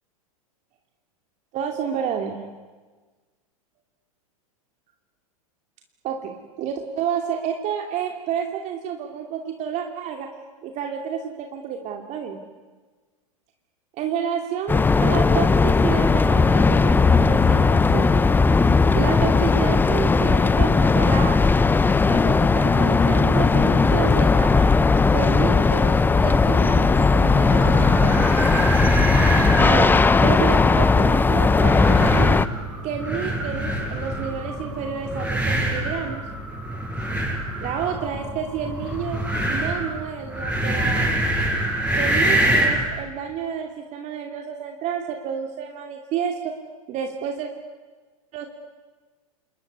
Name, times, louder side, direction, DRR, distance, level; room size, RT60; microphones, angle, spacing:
voice 1, 1.5-2.4 6.0-10.3 10.6-12.4 14.0-18.1 18.9-21.4 22.0-24.7 25.1-28.3 29.6-29.9 30.2-32.4 32.8-36.2 37.6-39.2 39.5-41.1 42.0-46.5 46.9-47.5 48.3-48.5, right 7 dB, 40° right, 3 dB, 2.7 m, -30 dB
sound 1, 14.7-32.4, left 4 dB, 10° left, 0.8 m, -17 dB
sound 2, 27.4-42.9, right 1 dB, 5° right, 7.8 m, -25 dB
28.0 x 21.0 x 9.8 m, 1.4 s
hypercardioid pair, 100°, 19 cm